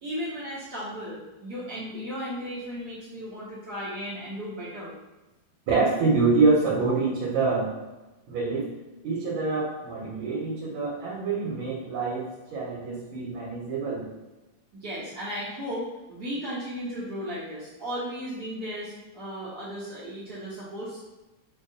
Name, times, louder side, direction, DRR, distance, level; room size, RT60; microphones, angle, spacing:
voice 1, 0.0-4.9 14.8-21.0, equal, 60° right, -9 dB, 1.3 m, -35 dB
voice 2, 5.7-7.7 8.3-8.7 9.0-14.1, right 3 dB, 85° right, -5 dB, 1.6 m, -26 dB
5.5 x 2.3 x 2.6 m, 1.1 s
omnidirectional pair, 2.2 m